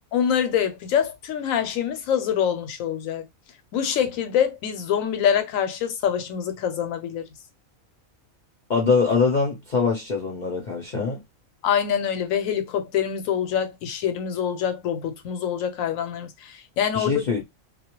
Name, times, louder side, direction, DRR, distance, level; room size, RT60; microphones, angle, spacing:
voice 1, 0.1-3.2 3.7-7.3 11.6-17.2, left 8 dB, 85° left, 1.0 m, -25 dB
voice 2, 8.7-11.2 16.9-17.4, left 5 dB, 50° left, 0.6 m, -23 dB
2.3 x 2.1 x 2.9 m
omnidirectional pair, 1.4 m